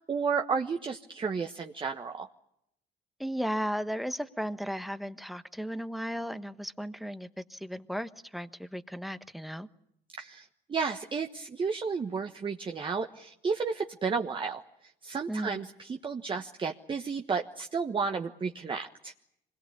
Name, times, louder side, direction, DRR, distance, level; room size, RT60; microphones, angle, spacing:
voice 1, 0.0-2.3 10.2-14.6 15.0-19.1, right 5 dB, 30° right, 4 dB, 1.3 m, -32 dB
voice 2, 3.2-9.7 15.3-15.6, equal, ahead, 11 dB, 1.2 m, -35 dB
26.0 x 21.5 x 8.6 m, 0.79 s
cardioid pair, 110°, 17 cm